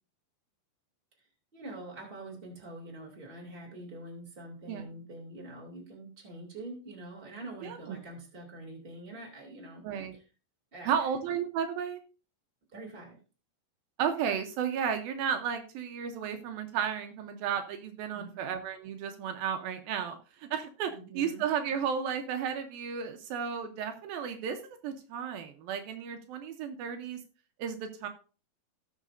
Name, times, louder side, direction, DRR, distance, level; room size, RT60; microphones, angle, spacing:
voice 1, 1.5-9.8 10.1-10.2 10.7-11.0 12.7-13.2 18.1-18.5 20.9-21.4, right 2 dB, 15° right, -1 dB, 2.6 m, -45 dB
voice 2, 7.6-8.0 9.8-10.2 10.9-12.0 14.0-27.2 27.6-28.1, right 8 dB, 80° right, 6 dB, 2.6 m, -33 dB
18.0 x 6.5 x 2.6 m, 0.35 s
omnidirectional pair, 4.3 m